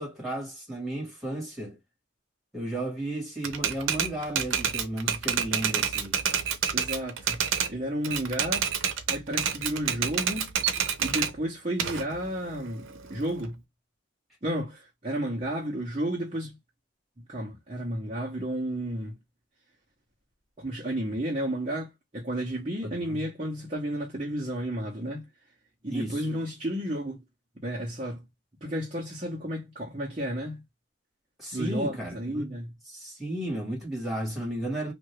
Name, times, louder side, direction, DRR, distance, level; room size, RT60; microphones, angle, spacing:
voice 1, 0.0-1.8 2.5-6.2 22.8-23.2 25.9-26.3 31.4-32.6 32.9-34.9, right 1 dB, ahead, 1.6 m, -34 dB
Typewriter, 3.4-7.7 8.0-11.3 11.8-13.5, right 8 dB, 85° right, 0.6 m, -28 dB
voice 2, 6.7-8.7 9.1-10.5 11.0-13.6 14.4-16.5 17.3-19.2 20.6-25.3 25.8-27.2 27.6-28.2 28.6-30.6 31.5-32.7, right 1 dB, 30° right, 0.8 m, -32 dB
2.7 x 2.5 x 3.0 m
head